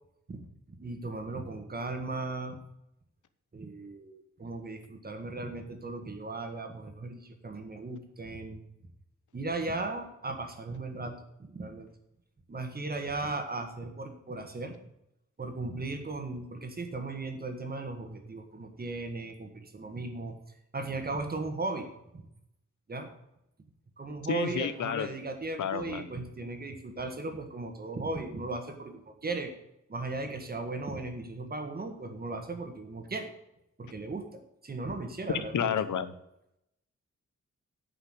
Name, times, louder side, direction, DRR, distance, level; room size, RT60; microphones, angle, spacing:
voice 1, 0.8-2.6 3.5-8.6 9.3-11.1 11.4-11.9 12.5-14.7 15.4-20.3 20.7-21.9 22.1-22.2 22.9-23.1 24.0-29.5 29.9-33.3 33.8-35.7, right 3 dB, 30° right, 5 dB, 1.7 m, -37 dB
voice 2, 24.3-25.1 25.6-26.1 35.5-36.1, left 8 dB, 85° left, 12 dB, 0.9 m, -30 dB
9.7 x 5.7 x 7.9 m, 0.82 s
wide cardioid pair, 165°, 30 cm